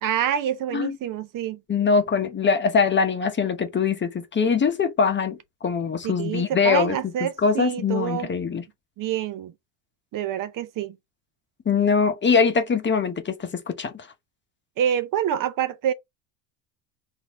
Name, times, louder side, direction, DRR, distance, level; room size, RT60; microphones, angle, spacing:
voice 1, 0.0-1.6 6.0-8.3 9.0-9.5 10.1-10.9 14.8-15.9, right 9 dB, 45° right, 0.7 m, -27 dB
voice 2, 1.7-8.6 11.7-14.1, left 5 dB, 25° left, 0.9 m, -23 dB
3.9 x 2.8 x 4.6 m
supercardioid pair, 95°, 47 cm